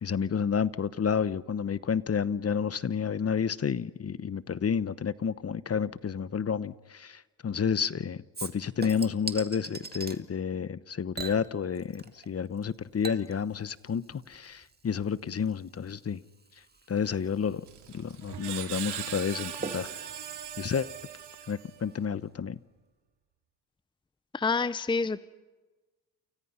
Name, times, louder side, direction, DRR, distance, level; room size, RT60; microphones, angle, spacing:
voice 1, 0.0-16.2 16.9-17.6 17.9-19.9 20.6-20.9 21.5-22.6, left 7 dB, 35° left, 16 dB, 1.0 m, -30 dB
Chink clink / Liquid, 8.3-10.2 11.1-12.3 12.6-21.6 21.9-22.0, right 3 dB, 20° right, 2.2 m, -44 dB
Screech, 17.7-22.0, right 10 dB, 70° right, 2.6 m, -40 dB
voice 2, 24.3-25.2, left 4 dB, 10° left, 15 dB, 0.7 m, -27 dB
30.0 x 29.0 x 5.7 m, 1.2 s
cardioid pair, 75°, 42 cm